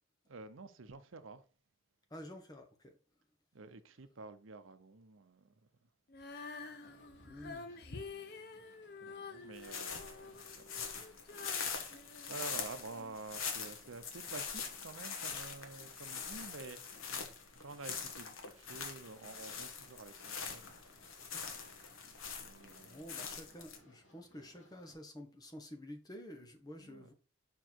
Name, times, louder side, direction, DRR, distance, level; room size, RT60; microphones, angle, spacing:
voice 1, 0.3-1.5 3.5-5.5 5.8-5.9 7.0-8.4 9.0-10.7 11.4-16.8 17.1-20.7 21.2-21.9 22.4-23.6 26.8-27.1, right 3 dB, 80° right, 0.7 m, -51 dB
voice 2, 2.1-2.9 7.2-7.7 22.8-27.1, equal, 20° left, 1.1 m, -50 dB
Female singing, 6.1-13.2 13.8-13.9, left 4 dB, 50° left, 0.8 m, -49 dB
sound 1, 6.6-24.9, equal, 70° left, 3.3 m, -66 dB
sound 2, 9.5-23.8, left 6 dB, 85° left, 1.3 m, -43 dB
5.5 x 4.5 x 4.5 m
head